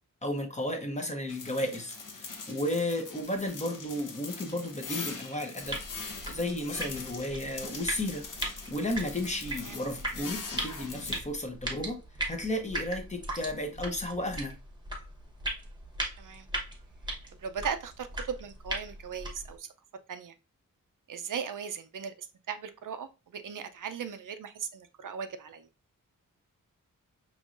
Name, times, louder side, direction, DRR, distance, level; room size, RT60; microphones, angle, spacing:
voice 1, 0.2-12.0 12.3-14.6, left 1 dB, 20° left, 0.7 m, -34 dB
sound 1, 1.3-11.2, left 4 dB, 70° left, 0.9 m, -42 dB
sound 2, 5.6-19.6, right 1 dB, 15° right, 0.9 m, -39 dB
voice 2, 17.4-19.7 20.1-20.3 21.1-25.7, right 7 dB, 65° right, 0.5 m, -38 dB
5.3 x 3.0 x 2.4 m
wide cardioid pair, 150°, 33 cm